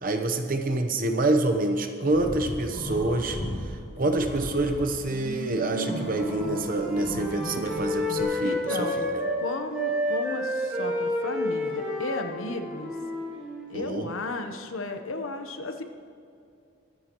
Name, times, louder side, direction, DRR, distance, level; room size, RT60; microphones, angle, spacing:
voice 1, 0.0-9.2 13.7-14.1, right 2 dB, 40° right, 5 dB, 0.8 m, -27 dB
sound 1, 2.0-3.6 4.0-8.2, equal, 40° left, 3.4 m, -36 dB
Wind instrument woodwind instrument, 5.7-9.4 9.7-13.8, left 1 dB, 5° right, 2.8 m, -30 dB
voice 2, 8.4-8.9 9.4-12.9 13.7-15.8, left 2 dB, 75° left, 7 dB, 0.9 m, -34 dB
23.5 x 9.6 x 3.0 m, 2.6 s
head